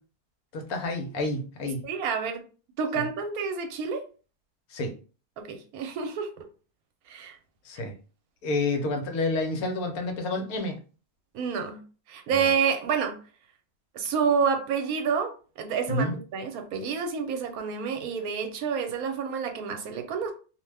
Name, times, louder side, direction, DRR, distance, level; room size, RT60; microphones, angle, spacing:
voice 1, 0.5-1.8 3.0-3.1 4.7-4.9 7.6-7.9 8.4-10.8 12.3-12.5 15.9-16.2, left 2 dB, 70° left, 4 dB, 1.1 m, -29 dB
voice 2, 1.8-2.4 2.8-4.0 5.4-6.4 7.1-7.4 11.3-11.8 12.1-13.2 13.9-15.3 15.6-20.3, right 6 dB, 75° right, 5 dB, 1.0 m, -28 dB
2.6 x 2.1 x 3.2 m, 0.36 s
omnidirectional pair, 1.7 m